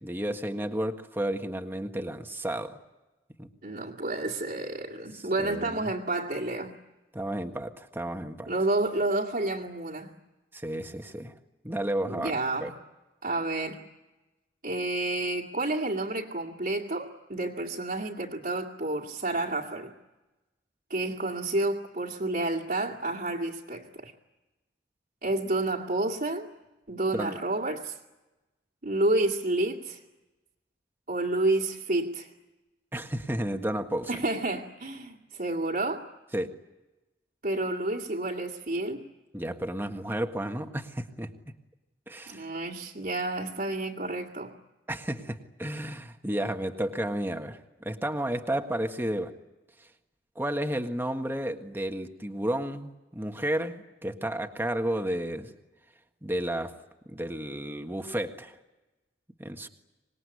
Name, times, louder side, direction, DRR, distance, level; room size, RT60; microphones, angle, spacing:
voice 1, 0.0-2.8 3.4-3.5 5.1-5.9 7.1-8.5 10.5-11.3 11.6-12.7 27.1-27.4 32.9-34.1 36.3-36.5 39.3-41.3 42.1-42.5 44.9-49.3 50.3-55.5 56.2-56.8 57.0-58.6 59.4-59.7, right 1 dB, 15° right, 5 dB, 1.6 m, -32 dB
voice 2, 3.6-6.7 8.5-10.1 12.0-12.7 13.2-13.8 14.6-19.9 20.9-24.1 25.2-26.5 26.9-27.9 28.8-30.0 31.1-32.3 34.1-36.1 37.4-39.1 42.3-44.5, right 2 dB, 55° right, -4 dB, 2.3 m, -30 dB
25.5 x 20.5 x 9.8 m, 1.1 s
head